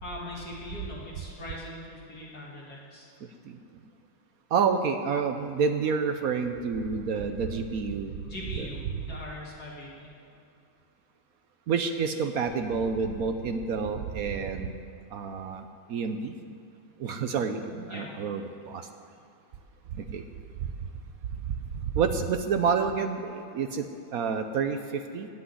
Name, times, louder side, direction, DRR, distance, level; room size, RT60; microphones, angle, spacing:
voice 1, 0.0-3.1 8.3-10.1 17.9-18.2, left 1 dB, 50° left, -5 dB, 2.4 m, -41 dB
voice 2, 4.5-8.1 8.6-8.7 11.7-14.7 15.1-15.6 15.9-16.3 17.0-18.8 20.1-20.2 21.9-23.8 24.1-24.8 25.1-25.3, right 5 dB, 70° right, 7 dB, 0.8 m, -28 dB
16.5 x 6.2 x 9.5 m, 2.5 s
omnidirectional pair, 2.3 m